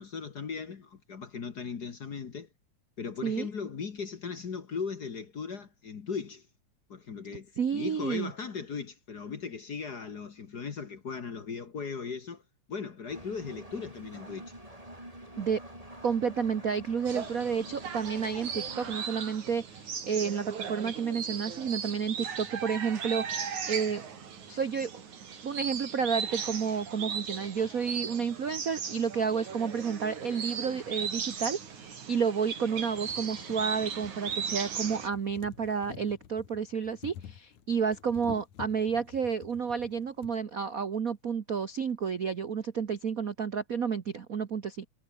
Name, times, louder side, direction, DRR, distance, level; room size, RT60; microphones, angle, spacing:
voice 1, 0.0-2.5 3.0-6.5 6.9-12.4 12.7-14.5, left 5 dB, 40° left, 1.6 m, -38 dB
voice 2, 7.6-8.3 15.4-15.6 16.0-24.0 24.5-24.9 25.4-44.8, right 6 dB, 60° right, 0.9 m, -31 dB
Engine, 13.1-18.9, right 1 dB, 10° right, 7.9 m, -47 dB
sound 1, 17.1-35.1, right 7 dB, 80° right, 4.5 m, -37 dB
sound 2, 30.8-30.9 31.9-32.0 32.4-32.5 32.8-40.4 41.3-41.4 41.6-41.7, left 9 dB, 80° left, 3.3 m, -49 dB
omnidirectional pair, 3.3 m